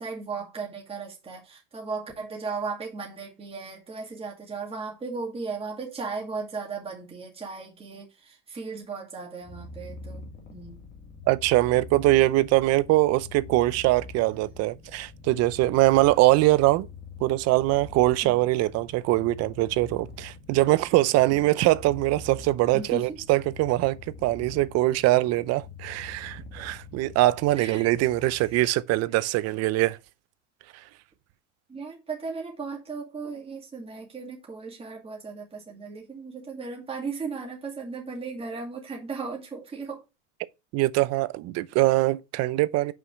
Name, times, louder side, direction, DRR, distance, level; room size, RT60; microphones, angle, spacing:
voice 1, 0.0-10.2 10.5-10.8 18.2-18.4 22.7-23.2 27.6-27.9 31.7-40.0, right 4 dB, 15° right, 2.2 m, -36 dB
Purr, 9.4-28.7, left 3 dB, 30° left, 1.8 m, -45 dB
voice 2, 11.3-16.9 17.2-30.0 40.7-42.9, right 18 dB, 45° right, 0.6 m, -23 dB
5.8 x 4.8 x 6.2 m
supercardioid pair, 115°, 37 cm